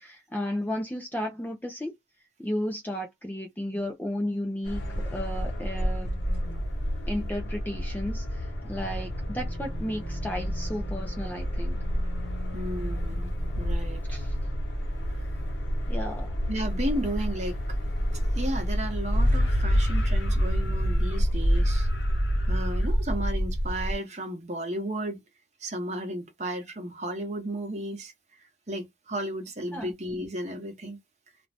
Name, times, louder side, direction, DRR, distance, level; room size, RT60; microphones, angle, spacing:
voice 1, 0.0-1.9 2.4-4.8 5.1-6.1 7.1-11.8 14.1-14.4 15.9-16.3 29.7-29.9, equal, 10° left, 0.4 m, -33 dB
sound 1, 4.6-24.0, equal, 85° left, 1.0 m, -28 dB
voice 2, 12.5-14.0 15.1-15.2 16.5-17.6 18.3-21.9 22.5-25.2 25.6-28.1 28.7-31.0, right 1 dB, 40° right, 0.9 m, -34 dB
2.5 x 2.3 x 3.3 m
head